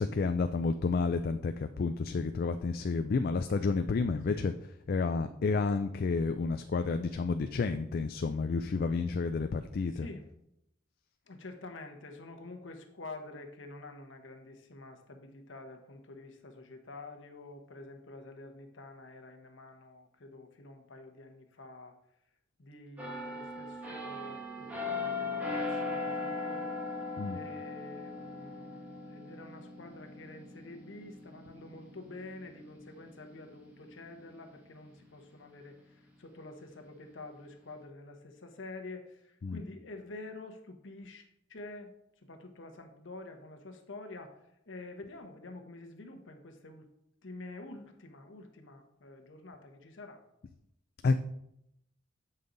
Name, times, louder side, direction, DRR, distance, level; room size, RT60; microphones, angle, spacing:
voice 1, 0.0-4.5 4.9-10.1 27.2-27.4 39.4-39.6 51.0-51.1, left 4 dB, 50° left, 8 dB, 0.4 m, -30 dB
voice 2, 9.9-10.3 11.3-22.0 22.6-26.7 27.3-41.2 41.5-41.9 42.2-44.4 44.7-46.9 47.2-50.2, left 2 dB, 75° left, 5 dB, 1.0 m, -48 dB
sound 1, 23.0-34.5 35.0-35.2, left 3 dB, 10° right, 1.6 m, -39 dB
8.4 x 5.5 x 3.9 m, 0.79 s
head